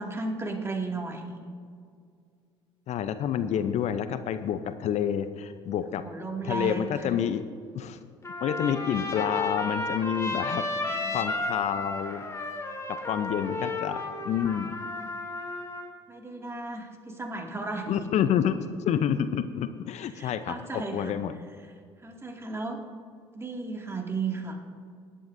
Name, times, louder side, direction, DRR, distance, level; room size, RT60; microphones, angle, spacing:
voice 1, 0.0-1.5 6.0-7.0 10.9-11.4 13.4-13.5 16.1-18.0 20.1-21.2 22.0-22.8 23.3-24.6, right 3 dB, 20° right, 1 dB, 2.2 m, -35 dB
voice 2, 2.9-6.0 6.4-7.4 7.7-8.0 8.4-12.2 13.1-14.7 17.9-21.3, left 9 dB, 55° left, 11 dB, 0.6 m, -28 dB
Trumpet, 8.2-15.9, left 2 dB, 20° left, 2.3 m, -33 dB
17.5 x 11.5 x 2.7 m, 2.2 s
hypercardioid pair, 65°, 14 cm